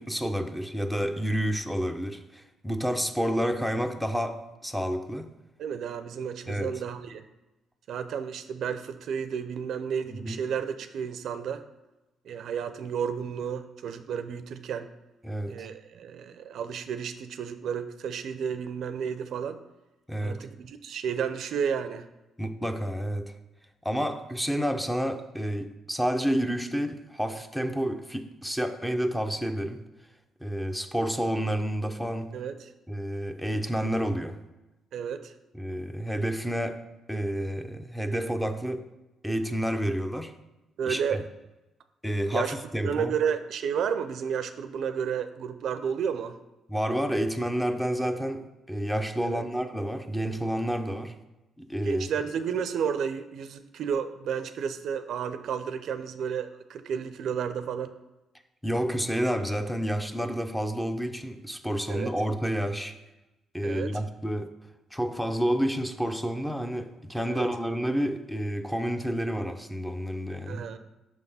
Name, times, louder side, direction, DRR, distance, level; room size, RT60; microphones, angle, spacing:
voice 1, 0.0-5.3 6.5-6.7 10.1-10.4 15.2-15.7 20.1-20.4 22.4-23.3 23.8-29.8 30.4-32.3 32.9-34.4 35.5-36.8 37.1-38.9 39.2-40.3 40.9-41.2 42.0-43.1 46.7-51.1 51.6-52.1 58.6-62.9 63.5-64.5 64.9-70.7, equal, 5° left, 7 dB, 0.5 m, -29 dB
voice 2, 5.6-7.2 7.9-11.6 12.2-14.9 15.5-19.6 20.2-22.1 32.3-32.7 34.9-35.3 40.8-41.2 42.3-42.5 42.8-46.4 49.2-49.4 51.8-57.9 61.9-62.1 63.6-64.0 67.3-67.5 70.5-70.8, right 7 dB, 70° right, 10 dB, 0.4 m, -32 dB
6.2 x 3.5 x 5.5 m, 1.0 s
cardioid pair, 90°, 0 cm